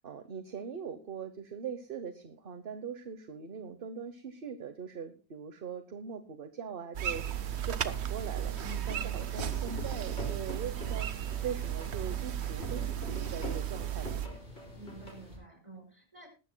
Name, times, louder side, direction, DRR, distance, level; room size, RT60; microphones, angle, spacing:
voice 1, 0.0-8.6 8.9-14.4, right 7 dB, 55° right, 9 dB, 1.1 m, -41 dB
sound 1, 6.9-14.3, right 10 dB, 75° right, 1.1 m, -35 dB
sound 2, 7.1-15.4, equal, 50° left, 6.0 m, -51 dB
sound 3, 8.4-15.1, equal, 65° left, 4.5 m, -44 dB
voice 2, 8.6-9.2 14.7-16.3, right 1 dB, 30° right, 3 dB, 5.5 m, -50 dB
19.5 x 13.0 x 2.2 m, 0.33 s
omnidirectional pair, 1.1 m